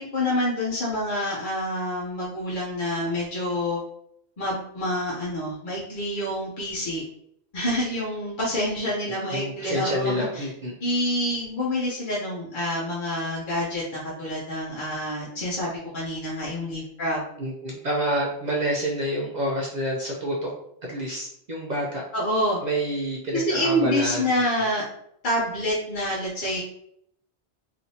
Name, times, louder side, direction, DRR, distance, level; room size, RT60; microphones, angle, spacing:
voice 1, 0.0-3.8 4.4-7.0 7.5-10.5 10.8-17.2 22.1-22.6 23.3-24.8 25.2-26.6, left 1 dB, 50° left, -7 dB, 0.9 m, -27 dB
voice 2, 9.3-10.7 17.4-20.5 20.8-22.0 22.6-24.3 24.6-24.7, equal, 50° right, -2 dB, 0.6 m, -28 dB
3.3 x 2.8 x 2.7 m, 0.73 s
omnidirectional pair, 1.1 m